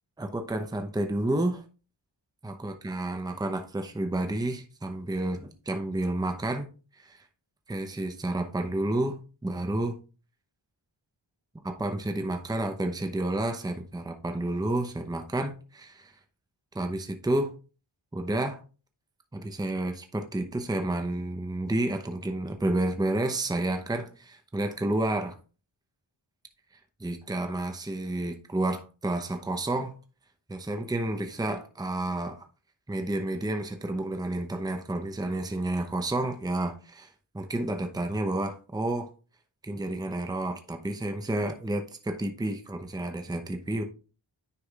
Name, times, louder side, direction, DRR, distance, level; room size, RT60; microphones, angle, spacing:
voice 1, 0.2-1.6 2.4-6.7 7.0-7.2 7.7-10.0 11.6-16.1 16.7-17.5 18.1-18.6 19.3-25.4 27.0-29.9 30.5-32.5 32.9-39.1 39.6-43.8, right 1 dB, 10° right, 0.7 m, -30 dB
9.7 x 4.9 x 2.4 m
wide cardioid pair, 80°, 46 cm